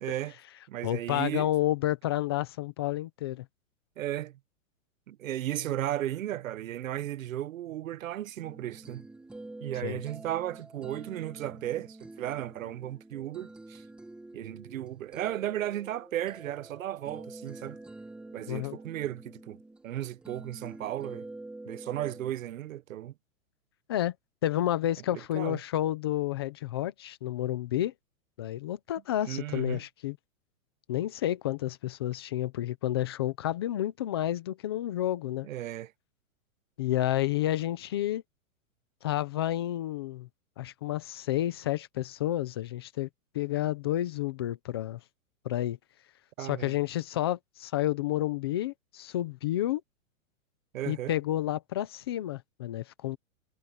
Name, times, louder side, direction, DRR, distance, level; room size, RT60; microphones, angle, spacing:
voice 1, 0.0-0.3 0.7-1.5 4.0-4.4 5.1-9.1 9.6-13.8 14.3-17.8 18.3-19.6 19.8-21.3 21.6-23.1 25.1-25.6 29.3-29.8 35.4-35.9 46.4-46.8 50.7-51.2, right 12 dB, 70° right, 1.2 m, -35 dB
voice 2, 0.8-3.5 9.8-10.0 18.5-18.8 23.9-24.1 24.4-27.9 28.4-30.2 30.9-35.5 36.8-38.2 39.0-40.3 40.6-43.1 43.3-45.0 45.4-45.8 46.4-49.8 50.9-53.2, left 13 dB, 20° left, 0.5 m, -30 dB
sound 1, 8.4-22.3, right 2 dB, ahead, 1.1 m, -47 dB
supercardioid pair, 170°, 42 cm